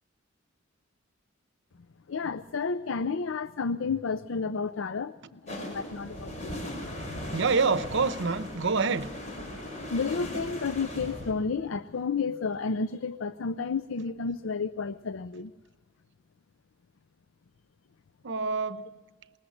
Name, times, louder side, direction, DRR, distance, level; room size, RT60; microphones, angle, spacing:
voice 1, 2.1-6.7 7.1-7.2 9.9-15.5, left 5 dB, 75° left, 0.5 m, -31 dB
sound 1, 5.5-11.3, left 1 dB, 35° left, 5.4 m, -38 dB
voice 2, 7.3-9.1 18.2-18.9, right 4 dB, 65° right, 0.9 m, -26 dB
20.5 x 20.0 x 6.5 m
head